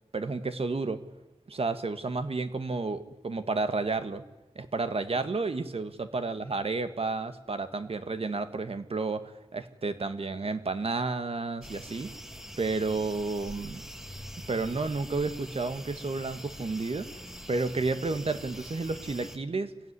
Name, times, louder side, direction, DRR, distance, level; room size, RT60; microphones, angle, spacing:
voice 1, 0.1-1.0 1.5-4.2 4.5-12.1 12.6-13.8 14.5-17.1 17.5-19.7, right 3 dB, 65° right, 10 dB, 1.6 m, -31 dB
sound 1, 11.6-19.4, equal, 5° right, 1.7 m, -44 dB
25.0 x 16.0 x 9.8 m, 1.1 s
wide cardioid pair, 80°, 11 cm